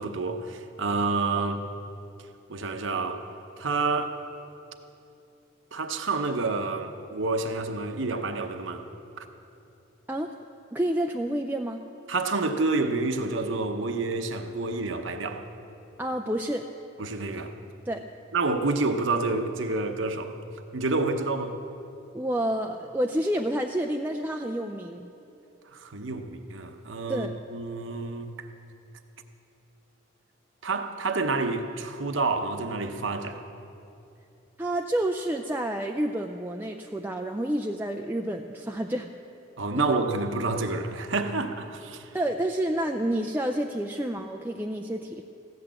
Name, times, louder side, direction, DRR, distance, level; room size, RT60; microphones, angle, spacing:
voice 1, 0.0-1.6 2.5-3.3 3.6-4.2 5.7-8.8 9.2-9.3 12.1-15.4 17.0-17.5 18.3-20.4 20.7-21.5 25.7-28.5 30.6-33.4 39.6-42.1, right 3 dB, 70° right, 6 dB, 0.8 m, -28 dB
voice 2, 10.7-11.8 16.0-16.7 17.9-18.0 22.1-25.1 27.1-27.3 34.6-39.1 39.8-39.9 42.1-45.2, right 1 dB, 10° right, 3 dB, 0.4 m, -29 dB
15.5 x 10.5 x 7.5 m, 2.8 s
head